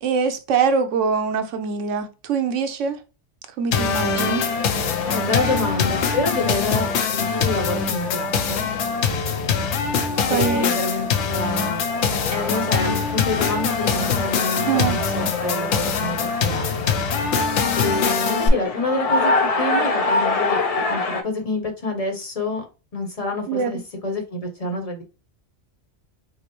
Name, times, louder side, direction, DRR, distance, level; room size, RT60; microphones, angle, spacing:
voice 1, 0.0-3.0 3.6-4.5 10.3-10.8 14.6-15.0 23.5-23.7, right 5 dB, 85° right, 1.0 m, -23 dB
sound 1, 3.7-18.5, left 5 dB, 70° left, 0.9 m, -23 dB
sound 2, 4.0-21.2, left 3 dB, 50° left, 0.4 m, -28 dB
voice 2, 5.0-8.7 10.3-11.8 12.3-16.7 17.8-19.3 19.6-20.6 20.9-22.6 22.9-25.0, left 2 dB, 35° left, 0.8 m, -27 dB
5.0 x 2.0 x 2.9 m
omnidirectional pair, 1.2 m